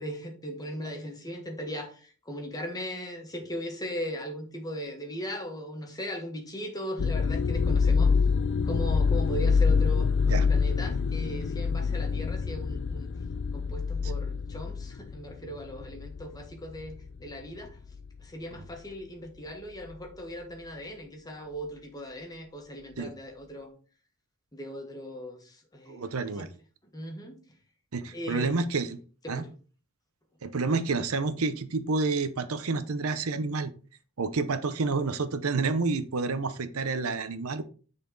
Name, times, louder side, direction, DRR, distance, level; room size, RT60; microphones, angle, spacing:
voice 1, 0.0-8.1 8.6-13.1 13.5-17.8 18.2-23.7 24.5-26.0 26.4-26.5 26.9-27.4 28.1-28.5 29.2-29.5, equal, 20° left, 3 dB, 1.6 m, -38 dB
sound 1, 7.0-16.4 16.8-17.2 17.9-18.2, left 5 dB, 55° left, 0.4 m, -26 dB
voice 2, 25.9-26.5 27.9-29.0 29.3-29.4 30.4-33.7 34.2-37.6, right 3 dB, 75° right, 12 dB, 0.7 m, -29 dB
9.7 x 4.2 x 3.9 m, 0.39 s
head